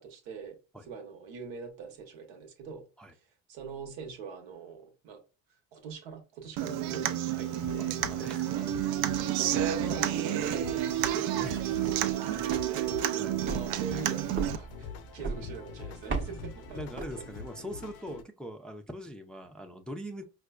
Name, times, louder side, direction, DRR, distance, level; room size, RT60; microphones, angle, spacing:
voice 1, 0.0-0.6 0.8-2.8 3.5-5.2 5.7-8.0 8.5-8.8 9.4-11.2 11.8-16.8, right 6 dB, 80° right, 1.0 m, -43 dB
Human voice / Acoustic guitar, 6.6-14.6, right 12 dB, 65° right, 0.5 m, -30 dB
sound 1, 7.4-18.2, left 6 dB, 80° left, 0.6 m, -45 dB
voice 2, 7.8-8.5 11.1-11.9 13.2-13.3 16.7-20.2, equal, ahead, 0.4 m, -42 dB
sound 2, 11.5-17.7, right 3 dB, 30° right, 0.7 m, -40 dB
4.8 x 2.2 x 2.3 m
supercardioid pair, 80°, 39 cm